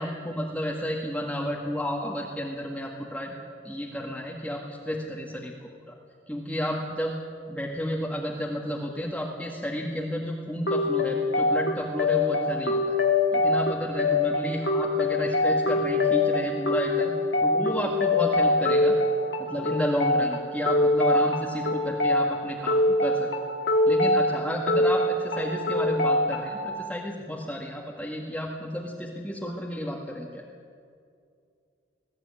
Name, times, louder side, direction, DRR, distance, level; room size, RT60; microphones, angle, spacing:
voice 1, 0.0-3.4 3.6-5.6 5.9-6.0 6.3-7.1 7.5-13.0 13.3-17.1 17.4-18.9 19.4-23.3 23.9-30.4, equal, 10° left, -2 dB, 1.9 m, -31 dB
sound 1, 10.7-26.7, left 2 dB, 75° left, 2.5 m, -24 dB
21.5 x 15.0 x 9.6 m, 2.3 s
head